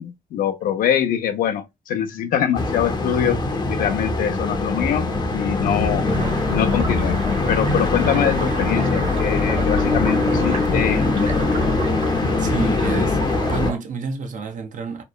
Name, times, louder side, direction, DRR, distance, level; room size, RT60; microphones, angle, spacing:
voice 1, 0.0-3.4 3.7-6.1 6.5-7.2 7.5-11.6, left 9 dB, 85° left, 0.5 m, -24 dB
sound 1, 2.5-13.7, left 3 dB, 30° left, 0.6 m, -22 dB
sound 2, 6.1-13.8, right 4 dB, 45° right, 1.1 m, -33 dB
voice 2, 12.4-15.0, right 5 dB, 65° right, 0.7 m, -29 dB
2.9 x 2.1 x 2.2 m
cardioid pair, 80°, 14 cm